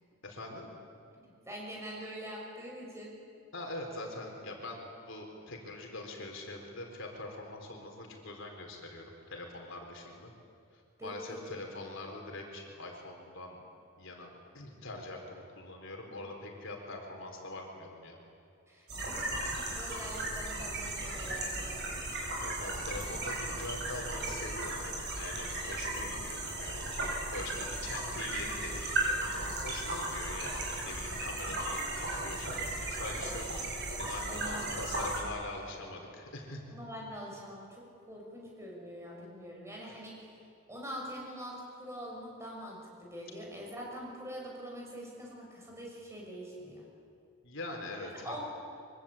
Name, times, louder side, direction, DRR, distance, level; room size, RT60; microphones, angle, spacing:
voice 1, 0.2-0.7 3.5-10.3 11.0-13.6 14.0-18.2 19.6-19.9 22.4-24.8 25.1-36.7 47.4-48.4, left 2 dB, 60° left, 1 dB, 4.3 m, -43 dB
voice 2, 1.1-3.2 11.0-11.4 18.7-22.0 34.3-35.1 36.7-40.4 40.7-46.9 48.0-48.4, equal, 15° right, -2 dB, 6.0 m, -44 dB
sound 1, 18.9-35.2, right 2 dB, 50° right, 6.7 m, -36 dB
24.5 x 24.0 x 8.7 m, 2.5 s
head